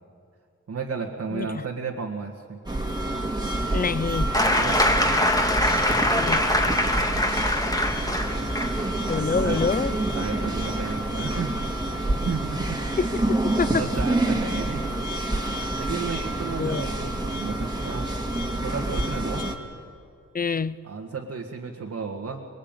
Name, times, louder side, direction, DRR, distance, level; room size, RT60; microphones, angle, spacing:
voice 1, 0.7-2.6 4.4-5.1 9.2-9.6 10.1-11.6 11.9-12.8 13.7-14.9 15.8-18.1 18.6-19.5 20.8-22.5, right 5 dB, 60° right, -1 dB, 2.0 m, -33 dB
sound 1, 2.7-19.6, right 1 dB, 15° right, 2.2 m, -27 dB
voice 2, 3.7-4.4 6.2-6.4 9.1-9.9 13.0-13.7 16.6-16.9 20.3-20.8, left 5 dB, 30° left, 17 dB, 0.6 m, -26 dB
sound 2, 4.3-11.9 13.1-13.2, left 1 dB, 10° left, 1.8 m, -24 dB
26.0 x 21.0 x 9.1 m, 2.3 s
wide cardioid pair, 135°, 30 cm